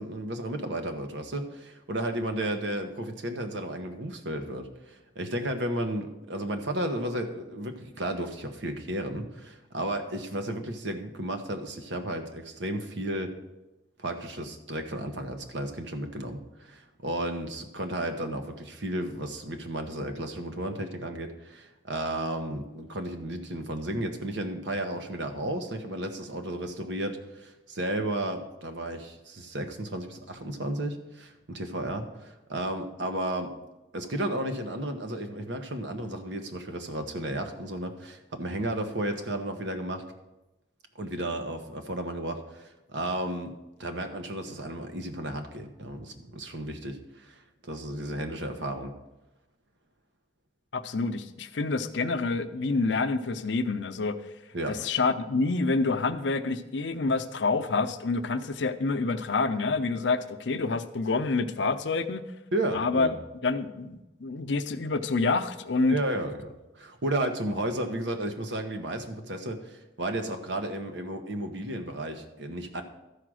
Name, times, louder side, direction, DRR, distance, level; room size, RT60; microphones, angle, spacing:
voice 1, 0.0-13.3 14.0-33.5 33.9-40.0 41.0-43.5 43.8-47.4 47.7-48.9 54.5-54.9 62.5-63.1 65.9-72.8, right 1 dB, 90° right, 6 dB, 1.1 m, -33 dB
voice 2, 50.7-54.1 54.7-62.2 62.7-63.1 63.4-66.0, left 3 dB, 85° left, 10 dB, 0.6 m, -27 dB
12.5 x 5.0 x 6.3 m, 1.0 s
head